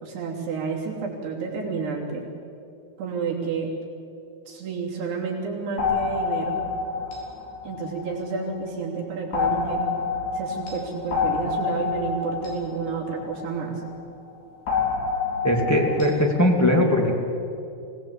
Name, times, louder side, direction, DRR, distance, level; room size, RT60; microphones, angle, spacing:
voice 1, 0.0-2.2 3.0-3.7 4.5-6.6 7.6-9.9 10.3-13.8, right 5 dB, 80° right, -1 dB, 5.2 m, -30 dB
sound 1, 5.8-8.6 9.3-13.9 14.7-16.5, left 5 dB, 70° left, 6.1 m, -28 dB
voice 2, 15.4-17.1, left 1 dB, 20° left, -1 dB, 0.4 m, -20 dB
24.5 x 18.0 x 8.3 m, 2.7 s
omnidirectional pair, 4.7 m